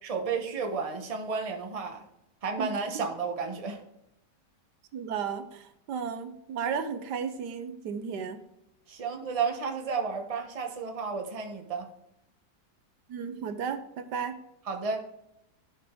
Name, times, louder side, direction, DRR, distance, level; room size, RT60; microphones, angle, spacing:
voice 1, 0.0-2.0 2.4-3.8 8.9-11.9 14.7-15.1, right 5 dB, 25° right, 3 dB, 1.0 m, -32 dB
voice 2, 4.9-8.4 13.1-14.4, right 6 dB, 80° right, 9 dB, 1.4 m, -34 dB
12.0 x 5.1 x 3.7 m, 0.85 s
omnidirectional pair, 1.8 m